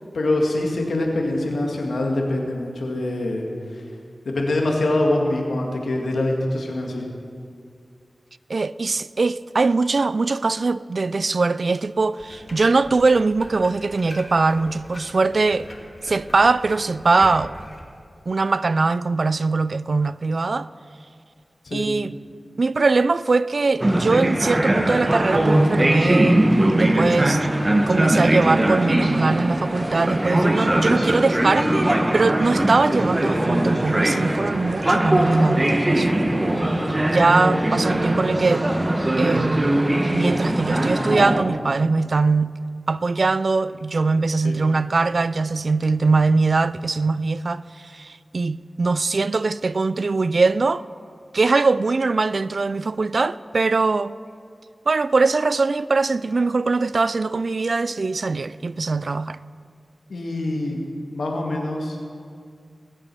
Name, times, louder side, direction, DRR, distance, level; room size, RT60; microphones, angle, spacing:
voice 1, 0.1-3.4 3.7-3.8 4.3-7.1 21.6-21.9 44.4-44.6 60.1-60.8 61.1-62.0, left 1 dB, 85° left, 2.0 m, -24 dB
voice 2, 8.5-15.7 16.0-17.5 18.3-20.7 21.7-22.2 22.6-26.4 26.8-27.4 27.9-36.2 37.1-38.7 39.2-39.7 40.1-42.5 42.9-50.8 51.3-54.2 54.9-59.4, right 3 dB, 65° right, 0.3 m, -21 dB
sound 1, 12.2-17.8, left 1 dB, 40° left, 2.5 m, -41 dB
sound 2, 23.8-41.4, right 1 dB, 30° right, 1.2 m, -20 dB
20.0 x 7.8 x 6.1 m
cardioid pair, 50°, 0 cm